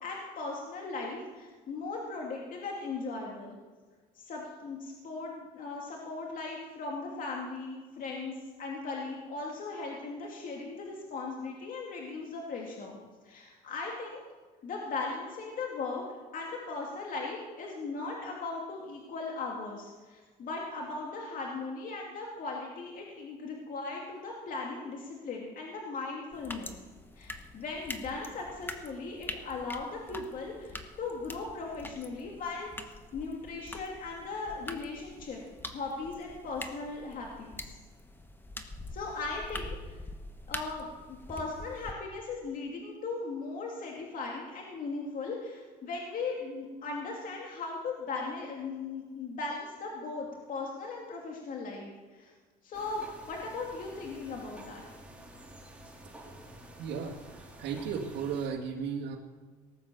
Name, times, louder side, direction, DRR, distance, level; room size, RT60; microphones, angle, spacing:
voice 1, 0.0-3.6 4.1-13.0 13.2-14.2 14.6-16.0 16.3-26.7 27.2-32.7 33.1-35.4 35.7-37.8 38.9-40.0 40.5-52.3 52.6-54.8, left 3 dB, 55° left, -1 dB, 2.6 m, -38 dB
sound 1, 26.3-41.9, left 2 dB, 10° left, 1.3 m, -44 dB
sound 2, 52.7-58.5, right 1 dB, 5° right, 3.1 m, -50 dB
voice 2, 56.8-57.2 57.6-59.2, right 6 dB, 85° right, 0 dB, 2.1 m, -34 dB
18.0 x 8.5 x 7.0 m, 1.4 s
cardioid pair, 110°, 17 cm